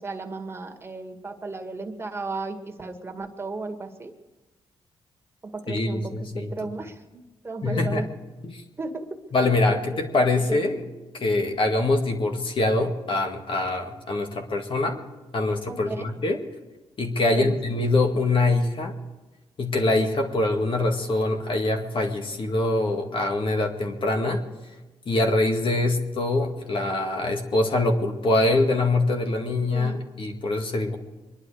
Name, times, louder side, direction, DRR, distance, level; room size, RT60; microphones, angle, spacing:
voice 1, 0.0-4.1 5.4-8.1 8.8-9.2 9.7-10.6 15.7-16.0 17.4-17.6 29.5-30.0, right 3 dB, 20° right, 3 dB, 2.1 m, -35 dB
voice 2, 5.7-6.5 7.6-8.0 8.4-8.6 9.3-10.9 11.2-15.0 15.3-16.4 17.0-19.0 19.6-24.4 25.1-31.0, left 2 dB, 50° left, 4 dB, 1.9 m, -24 dB
23.5 x 11.0 x 4.9 m, 1.1 s
cardioid pair, 70°, 11 cm